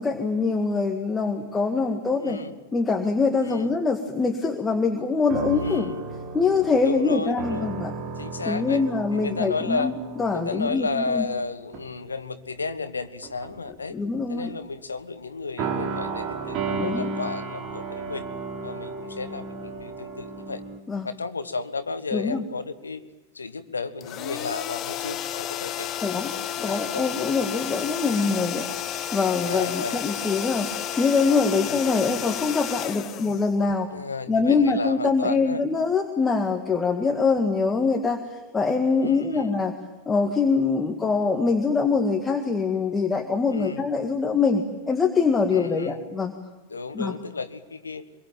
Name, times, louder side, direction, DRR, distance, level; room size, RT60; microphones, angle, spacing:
voice 1, 0.0-2.4 2.7-5.9 6.3-7.9 8.5-11.3 13.9-14.5 16.8-17.1 20.9-21.1 22.1-22.4 26.0-26.3 26.6-28.7 29.1-30.7 31.0-33.9 34.3-39.7 40.1-46.3 46.9-47.1, left 4 dB, 15° left, 4 dB, 1.9 m, -24 dB
voice 2, 2.2-2.5 3.4-3.7 5.5-6.0 6.8-7.7 8.2-8.8 9.1-9.9 10.3-14.0 14.3-18.3 18.6-20.6 21.0-23.0 23.3-27.0 28.0-28.3 29.4-30.0 31.6-31.8 33.9-35.6 39.0-39.5 43.5-43.8 45.5-46.0 46.7-48.0, left 4 dB, 75° left, 13 dB, 1.3 m, -33 dB
sound 1, 5.3-11.4 11.7-12.0 13.0-13.7 15.6-20.8, right 4 dB, 35° right, 3.3 m, -34 dB
sound 2, 24.0-34.0, left 10 dB, 35° left, 1.0 m, -32 dB
25.0 x 23.0 x 9.1 m, 1.2 s
figure-of-eight pair, 90°, 0 cm